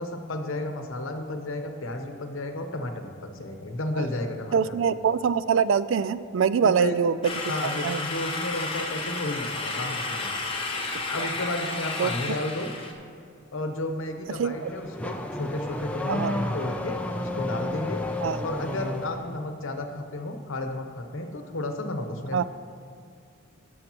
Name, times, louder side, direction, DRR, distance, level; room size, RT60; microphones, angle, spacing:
voice 1, 0.0-4.8 6.6-6.9 7.5-10.3 11.1-12.7 13.5-18.0 18.4-22.4, left 1 dB, 75° left, 5 dB, 0.9 m, -32 dB
voice 2, 4.5-7.3 7.6-8.0 10.9-11.3 12.0-12.1 14.4-14.7 16.1-16.4 18.2-18.4 22.3-22.4, right 6 dB, 70° right, 15 dB, 0.3 m, -24 dB
sound 1, 7.2-12.9, left 3 dB, 25° left, 0.8 m, -32 dB
Car / Accelerating revving vroom, 14.3-19.3, left 1 dB, 5° left, 0.4 m, -32 dB
17.0 x 6.4 x 3.0 m, 2.4 s
head